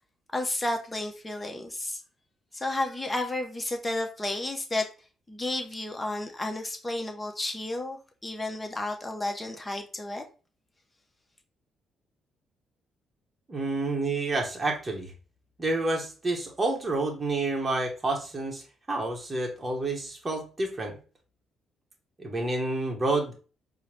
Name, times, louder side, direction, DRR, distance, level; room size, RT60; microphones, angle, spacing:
voice 1, 0.3-2.0 2.5-4.9 5.3-10.2, left 2 dB, 15° left, 3 dB, 0.8 m, -32 dB
voice 2, 13.5-15.1 15.6-21.0 22.2-23.3, right 2 dB, 25° right, 0 dB, 1.0 m, -29 dB
4.4 x 2.1 x 3.1 m, 0.36 s
cardioid pair, 90°, 0 cm